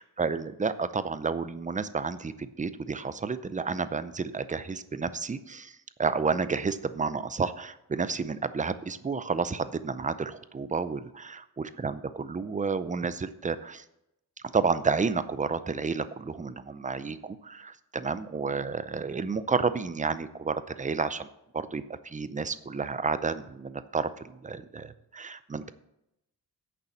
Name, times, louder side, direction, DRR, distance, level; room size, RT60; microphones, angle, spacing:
voice 1, 0.2-11.1 11.8-13.8 14.5-21.3 21.5-25.7, right 4 dB, 20° right, 13 dB, 0.5 m, -31 dB
9.7 x 6.9 x 7.2 m, 0.85 s
wide cardioid pair, 140°, 38 cm